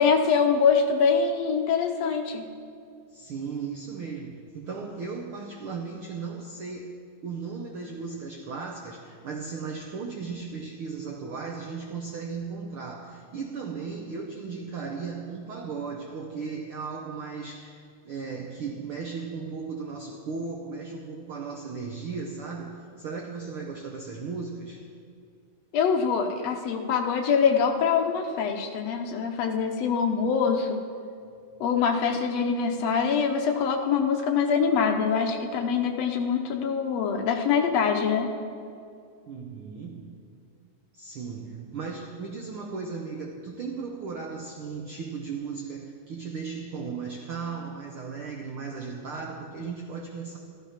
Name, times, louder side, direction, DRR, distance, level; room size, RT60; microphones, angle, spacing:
voice 1, 0.0-2.5 25.7-30.8 31.6-38.3, left 6 dB, 70° left, 4 dB, 1.7 m, -24 dB
voice 2, 3.1-6.9 7.2-24.8 39.3-40.1 40.9-50.4, right 5 dB, 70° right, 1 dB, 1.3 m, -36 dB
13.5 x 12.5 x 5.8 m, 2.3 s
omnidirectional pair, 3.7 m